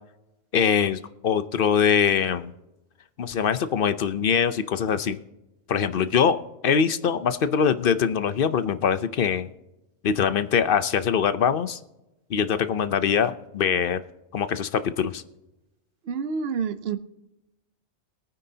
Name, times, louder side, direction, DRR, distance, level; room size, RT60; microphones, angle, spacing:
voice 1, 0.5-2.5 3.2-5.2 5.7-6.4 6.6-9.5 10.0-11.8 12.3-14.0 14.3-15.2, left 7 dB, 55° left, 12 dB, 0.8 m, -23 dB
voice 2, 16.1-17.0, right 6 dB, 60° right, 11 dB, 0.9 m, -28 dB
22.0 x 9.4 x 2.8 m, 0.94 s
omnidirectional pair, 1.2 m